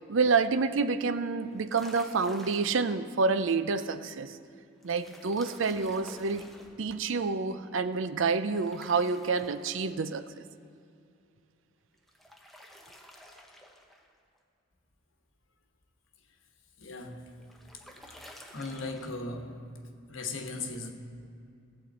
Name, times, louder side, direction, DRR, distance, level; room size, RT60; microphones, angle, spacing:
voice 1, 0.1-4.4 4.8-6.5 6.8-10.2, right 4 dB, 70° right, 11 dB, 0.5 m, -28 dB
sound 1, 1.5-3.0 4.8-6.8 8.4-10.1 11.9-14.1 17.0-19.1, left 1 dB, ahead, 0.8 m, -51 dB
voice 2, 16.8-17.4 18.5-19.7 20.1-20.9, left 3 dB, 75° left, 3 dB, 1.3 m, -37 dB
18.0 x 7.7 x 4.2 m, 2.5 s
head